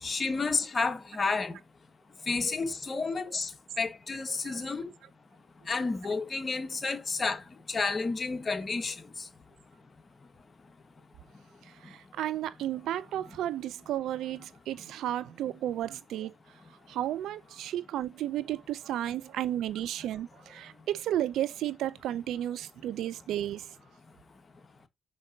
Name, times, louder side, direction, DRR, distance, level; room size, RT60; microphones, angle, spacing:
voice 1, 0.0-1.6 2.3-3.5 3.8-4.9 5.7-7.4 7.7-8.9, left 4 dB, 40° left, 1.5 m, -30 dB
voice 2, 11.8-16.3 16.9-23.7, right 12 dB, 85° right, 0.5 m, -33 dB
6.3 x 5.3 x 2.8 m
supercardioid pair, 55°, 0 cm